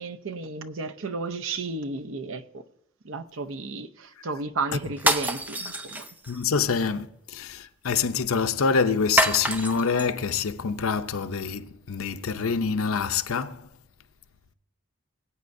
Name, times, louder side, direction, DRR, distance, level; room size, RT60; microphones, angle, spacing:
voice 1, 0.0-2.6 3.0-6.0, right 3 dB, 65° right, 0.7 m, -33 dB
sound 1, 5.0-6.4 9.2-10.1, right 1 dB, 10° right, 0.4 m, -26 dB
voice 2, 6.3-13.6, left 5 dB, 80° left, 0.6 m, -26 dB
22.0 x 8.4 x 2.6 m
head